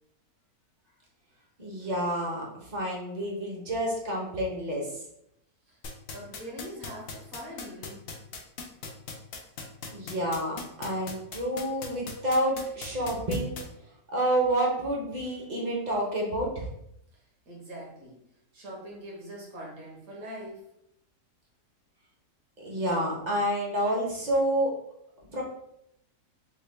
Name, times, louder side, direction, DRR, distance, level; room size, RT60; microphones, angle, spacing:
voice 1, 1.6-5.0 9.9-13.6 14.1-16.7 22.6-24.7 25.3-25.4, right 1 dB, 35° right, -3 dB, 0.7 m, -29 dB
sound 1, 5.8-13.6, left 5 dB, 90° left, 0.5 m, -38 dB
voice 2, 6.1-8.0 17.4-18.2 18.5-20.7, equal, 65° right, -4 dB, 1.6 m, -42 dB
3.7 x 2.3 x 3.3 m, 0.77 s
omnidirectional pair, 1.7 m